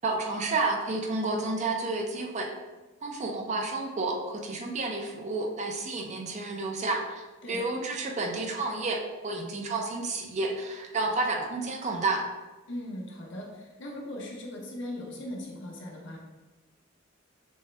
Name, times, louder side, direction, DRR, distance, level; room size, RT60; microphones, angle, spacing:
voice 1, 0.0-2.5 3.0-12.2, right 3 dB, 35° right, 2 dB, 0.5 m, -30 dB
voice 2, 12.7-16.2, left 1 dB, 60° left, -1 dB, 0.9 m, -39 dB
6.2 x 2.2 x 3.2 m, 1.2 s
head